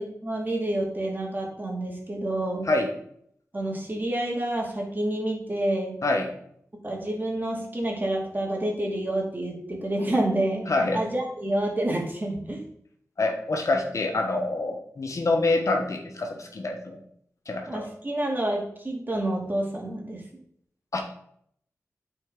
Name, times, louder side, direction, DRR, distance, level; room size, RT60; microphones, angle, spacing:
voice 1, 0.0-2.7 3.5-5.9 6.8-10.7 10.9-12.6 17.7-20.2, right 1 dB, 35° right, -1 dB, 2.4 m, -28 dB
voice 2, 10.7-11.0 13.2-17.0 17.5-17.9 20.9-21.0, left 2 dB, 60° left, 3 dB, 1.2 m, -26 dB
8.9 x 4.5 x 3.8 m, 0.68 s
cardioid pair, 45°, 6 cm